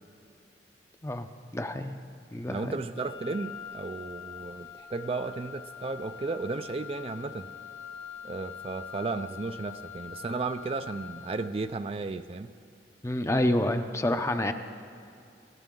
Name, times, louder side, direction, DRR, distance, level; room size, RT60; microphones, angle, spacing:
voice 1, 1.5-2.0 2.3-2.8 13.0-14.5, left 1 dB, 15° left, 7 dB, 0.6 m, -28 dB
voice 2, 2.5-7.5 8.2-12.5, right 3 dB, 35° right, 9 dB, 0.4 m, -34 dB
Wind instrument woodwind instrument, 2.9-11.6, left 8 dB, 75° left, 2.0 m, -44 dB
26.0 x 14.5 x 3.8 m, 2.4 s
head